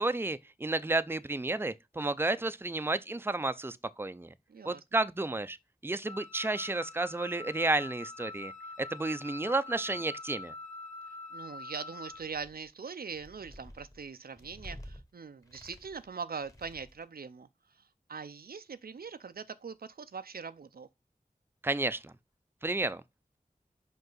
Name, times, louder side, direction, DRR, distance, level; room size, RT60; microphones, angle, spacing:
voice 1, 0.0-4.3 4.6-5.6 5.8-8.5 8.8-10.5 21.6-22.1 22.6-23.0, right 2 dB, 15° right, 0.5 m, -31 dB
voice 2, 4.5-4.8 11.3-17.5 18.1-20.9, right 5 dB, 90° right, 0.5 m, -42 dB
Wind instrument woodwind instrument, 6.0-12.3, left 2 dB, 55° left, 1.8 m, -45 dB
sound 1, 12.1-12.7 13.1-15.0 15.4-16.1 16.4-17.1, equal, 20° left, 1.4 m, -50 dB
5.3 x 5.3 x 3.8 m
wide cardioid pair, 60°, 15 cm